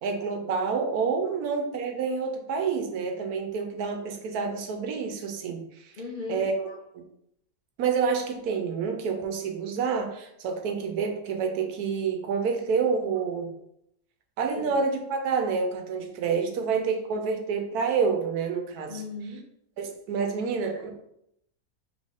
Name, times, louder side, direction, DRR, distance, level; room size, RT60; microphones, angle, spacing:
voice 1, 0.0-5.9 6.3-6.6 6.9-7.0 7.8-13.5 14.4-19.0 19.8-20.9, right 5 dB, 75° right, 4 dB, 1.2 m, -28 dB
voice 2, 6.0-6.8 14.6-14.8 18.9-19.4 20.7-20.9, left 4 dB, 50° left, -2 dB, 0.6 m, -38 dB
4.2 x 3.2 x 3.6 m, 0.77 s
omnidirectional pair, 1.6 m